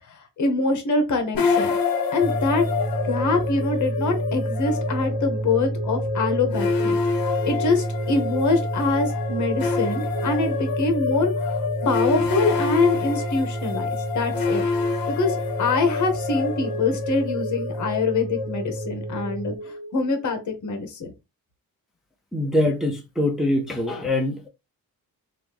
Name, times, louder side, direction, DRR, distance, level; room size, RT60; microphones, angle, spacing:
voice 1, 0.1-1.7 2.1-2.6 3.0-7.0 7.4-13.9 14.1-14.6 15.2-21.1, left 3 dB, 55° left, 1.0 m, -24 dB
sound 1, 1.3-20.5, left 4 dB, 75° left, 0.7 m, -27 dB
sound 2, 2.2-19.6, right 2 dB, 40° right, 1.1 m, -30 dB
voice 2, 22.3-24.5, left 1 dB, ahead, 0.6 m, -23 dB
3.0 x 2.5 x 3.4 m
cardioid pair, 125°, 35 cm